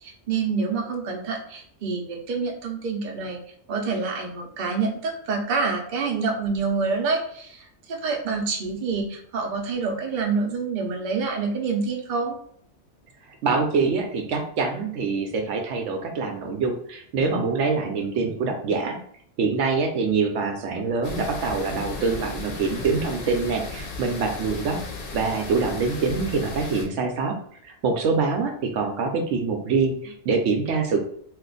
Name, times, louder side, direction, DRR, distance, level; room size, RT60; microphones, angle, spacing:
voice 1, 0.0-3.4 3.7-12.4, right 4 dB, 50° right, 1 dB, 0.7 m, -27 dB
voice 2, 13.4-19.0 19.4-24.8 25.1-27.4 27.6-31.0, right 4 dB, 80° right, 3 dB, 0.9 m, -25 dB
sound 1, 21.0-26.9, left 3 dB, 55° left, 0.8 m, -35 dB
2.5 x 2.4 x 3.8 m, 0.63 s
omnidirectional pair, 1.2 m